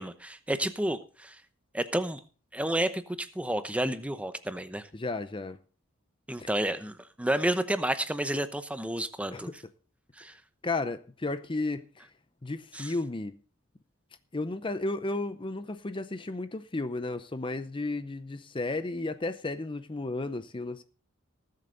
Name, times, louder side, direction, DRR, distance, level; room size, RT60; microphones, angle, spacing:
voice 1, 0.0-1.4 1.7-2.2 2.5-4.9 6.3-9.6 10.2-10.3 12.7-12.9, right 1 dB, 5° right, 0.8 m, -31 dB
voice 2, 4.9-5.6 6.4-6.5 9.3-9.5 10.6-12.1 12.4-13.3 14.3-20.8, left 2 dB, 25° left, 0.6 m, -33 dB
19.5 x 7.8 x 3.9 m
head